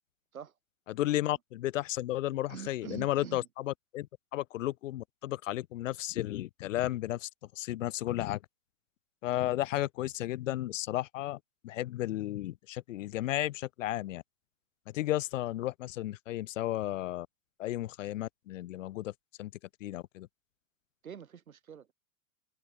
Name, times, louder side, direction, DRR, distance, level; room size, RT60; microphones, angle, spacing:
voice 1, 0.9-4.1 4.3-7.3 7.6-8.4 9.2-14.2 14.9-17.3 17.6-19.1 19.4-19.5 19.8-20.3, left 15 dB, 65° left, 0.7 m, -33 dB
voice 2, 2.5-3.5 21.0-21.9, right 8 dB, 90° right, 5.2 m, -45 dB
open air
hypercardioid pair, 135°, 41 cm